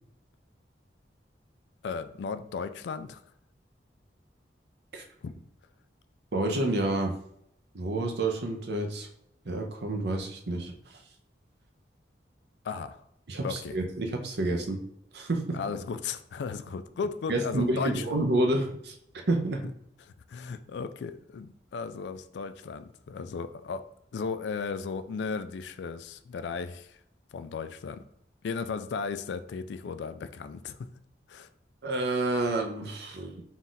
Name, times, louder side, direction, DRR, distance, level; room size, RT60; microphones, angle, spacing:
voice 1, 1.8-3.2 5.2-5.3 12.6-13.0 13.4-13.8 15.5-18.2 20.1-23.9 24.1-27.0 27.3-28.0 28.4-30.9 31.3-31.5, left 5 dB, 75° left, 11 dB, 0.3 m, -35 dB
voice 2, 6.3-7.1 7.7-9.1 9.5-11.0 13.3-14.8 15.1-15.6 17.3-18.9 19.3-19.6 31.8-33.4, right 2 dB, 65° right, 3 dB, 0.7 m, -29 dB
4.0 x 2.4 x 3.9 m, 0.72 s
head